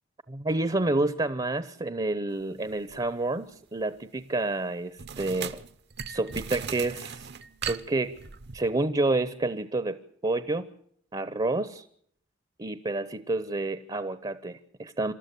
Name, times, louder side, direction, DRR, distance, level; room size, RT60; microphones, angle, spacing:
voice 1, 0.3-5.6 6.1-7.3 7.6-8.2 8.5-10.7 11.1-11.9 12.6-15.1, right 2 dB, 25° right, 13 dB, 0.8 m, -29 dB
sound 1, 2.9-3.1 5.0-8.7, right 7 dB, 55° right, 0.9 m, -38 dB
27.5 x 13.0 x 8.4 m, 0.65 s
head